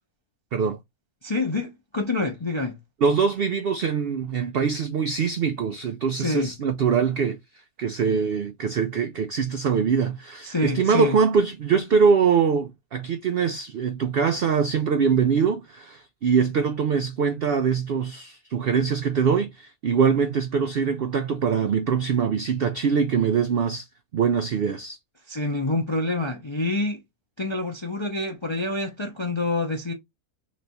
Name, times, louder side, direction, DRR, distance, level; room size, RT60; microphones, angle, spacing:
voice 1, 1.2-2.8 6.1-6.5 10.4-11.2 25.3-27.0 27.4-29.9, left 2 dB, 45° left, 0.3 m, -27 dB
voice 2, 3.0-7.4 7.8-23.9 24.1-25.0, right 6 dB, 85° right, 0.5 m, -23 dB
3.4 x 3.2 x 4.0 m
omnidirectional pair, 1.6 m